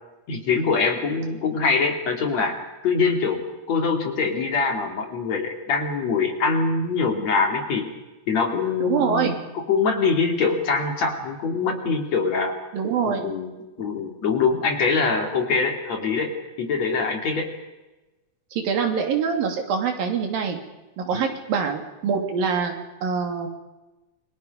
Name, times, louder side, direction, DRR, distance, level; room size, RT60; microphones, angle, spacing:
voice 1, 0.3-2.6 2.8-7.9 8.3-12.5 13.2-13.5 13.8-17.5 21.1-21.3, left 4 dB, 50° left, 4 dB, 3.4 m, -23 dB
voice 2, 8.8-9.4 12.7-13.3 18.5-20.6 21.0-23.5, right 6 dB, 70° right, 4 dB, 4.3 m, -25 dB
29.0 x 24.0 x 5.4 m, 1.1 s
omnidirectional pair, 4.3 m